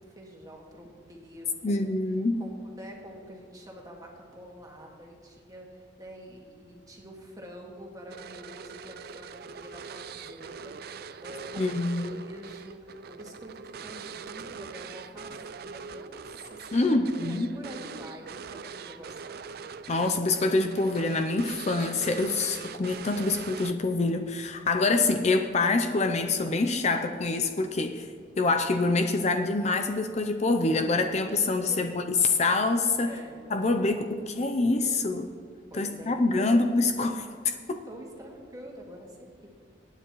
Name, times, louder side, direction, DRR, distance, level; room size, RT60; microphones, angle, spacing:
voice 1, 0.0-1.9 2.3-19.6 31.7-32.0 33.0-33.5 35.7-36.5 37.8-39.5, equal, 20° right, 0 dB, 1.9 m, -46 dB
voice 2, 1.6-2.4 11.6-12.2 16.7-17.5 19.9-28.1 28.4-33.1 33.5-35.3 35.7-37.8, left 3 dB, 40° left, 6 dB, 0.5 m, -26 dB
sound 1, 8.1-24.1, right 5 dB, 55° right, 0.4 m, -42 dB
23.0 x 9.4 x 3.1 m, 2.2 s
head